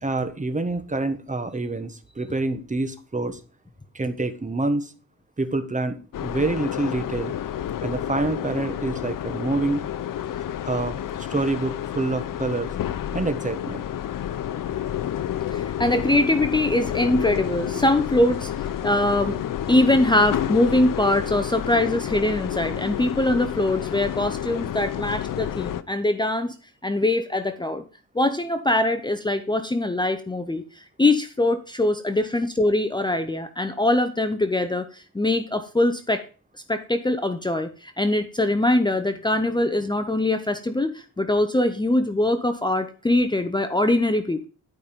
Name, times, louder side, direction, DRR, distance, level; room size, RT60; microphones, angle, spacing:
voice 1, 0.0-3.4 3.9-4.9 5.4-7.3 7.8-9.8 10.6-12.7 13.1-13.8, right 2 dB, 20° right, 9 dB, 1.3 m, -27 dB
sound 1, 6.1-25.8, left 10 dB, 70° left, 0.7 m, -30 dB
voice 2, 15.5-19.4 19.7-26.5 26.8-27.8 28.1-36.2 36.7-44.5, left 1 dB, 15° left, 9 dB, 0.8 m, -22 dB
11.5 x 5.3 x 5.2 m, 0.36 s
cardioid pair, 100°, 33 cm